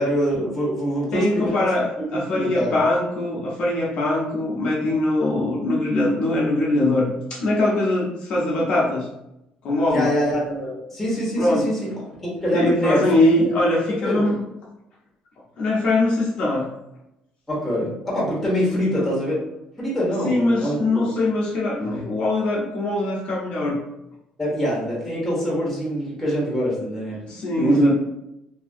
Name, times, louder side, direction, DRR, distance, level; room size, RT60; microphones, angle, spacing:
voice 1, 0.0-1.5 2.1-2.7 9.9-11.9 12.2-13.0 13.4-13.6 14.0-14.2 17.5-19.4 19.8-21.1 24.4-27.2 27.6-27.9, equal, 5° left, -6 dB, 0.8 m, -24 dB
voice 2, 1.1-9.1 9.6-10.1 11.4-11.7 12.5-14.4 15.6-16.7 18.7-19.1 20.2-23.8 27.2-27.9, left 2 dB, 45° left, -4 dB, 0.5 m, -22 dB
2.7 x 2.4 x 2.5 m, 0.86 s
cardioid pair, 180°, 3 cm